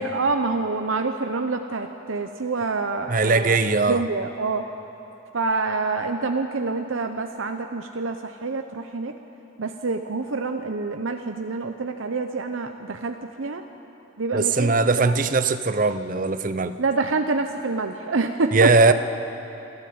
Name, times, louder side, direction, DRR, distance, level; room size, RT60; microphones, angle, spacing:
voice 1, 0.0-3.6 3.9-4.7 5.3-9.1 9.6-13.6 14.2-15.1 16.8-18.9, right 3 dB, 85° right, 6 dB, 0.8 m, -27 dB
voice 2, 3.1-4.0 14.3-16.8 18.5-18.9, right 3 dB, 40° right, 11 dB, 0.7 m, -20 dB
26.0 x 13.0 x 8.7 m, 2.9 s
head